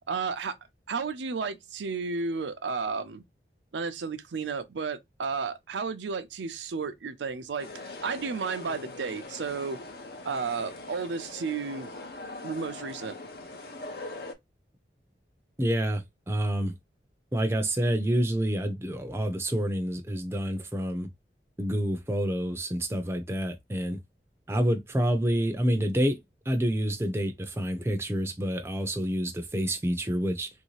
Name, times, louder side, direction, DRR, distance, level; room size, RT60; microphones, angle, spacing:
voice 1, 0.1-0.6 0.9-3.2 3.7-9.8 10.2-11.9 12.4-13.2, right 5 dB, 90° right, 0.5 m, -32 dB
sound 1, 7.6-14.3, left 2 dB, 60° left, 0.6 m, -42 dB
voice 2, 15.6-16.7 17.3-21.1 21.6-24.0 24.5-26.2 26.5-30.5, equal, 15° right, 0.5 m, -28 dB
3.2 x 2.7 x 3.0 m
head